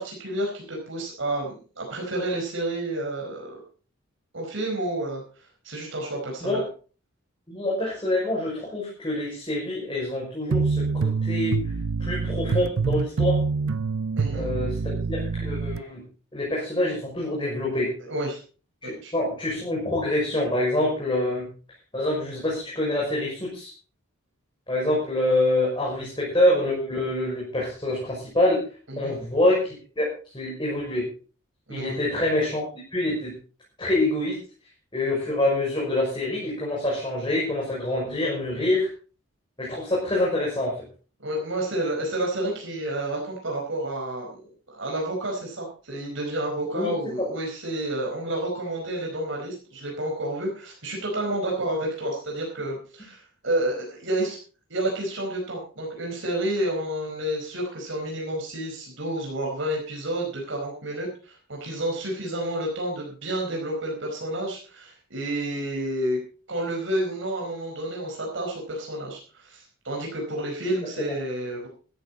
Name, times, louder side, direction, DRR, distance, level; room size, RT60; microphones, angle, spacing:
voice 1, 0.0-3.5 4.3-5.2 5.6-6.6 14.2-14.4 18.1-18.4 18.8-19.1 28.9-29.1 31.7-32.0 41.2-54.4 54.7-66.2 66.5-71.7, right 1 dB, 60° right, 0 dB, 4.7 m, -30 dB
voice 2, 7.5-11.7 12.0-13.4 14.3-16.0 16.3-17.9 18.8-21.5 21.9-23.7 24.7-28.6 29.0-31.1 31.7-33.4 33.8-34.4 34.9-38.9 39.6-40.8 46.7-46.9 47.2-47.3 70.8-71.1, left 1 dB, 25° left, -4 dB, 6.0 m, -26 dB
sound 1, 10.5-15.8, right 4 dB, 85° right, 0.6 m, -26 dB
15.0 x 13.5 x 4.1 m, 0.37 s
head